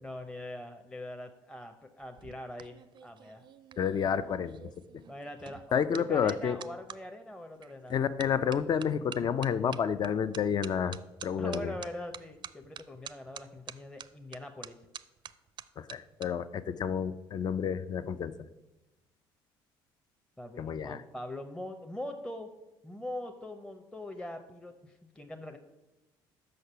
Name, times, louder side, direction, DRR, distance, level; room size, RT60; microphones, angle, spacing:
voice 1, 0.0-3.5 5.1-8.0 11.4-14.7 20.4-22.5 22.8-25.6, left 1 dB, 5° left, 4 dB, 0.7 m, -42 dB
sound 1, 2.0-7.0 7.6-7.9 8.2-16.3 16.6-16.9, right 9 dB, 45° right, 0.4 m, -47 dB
voice 2, 3.8-4.6 5.7-6.6 7.9-11.0 11.2-11.7 15.8-18.3 20.6-21.0, left 7 dB, 40° left, 14 dB, 0.5 m, -30 dB
6.5 x 5.8 x 5.5 m, 1.0 s
supercardioid pair, 70°, 11 cm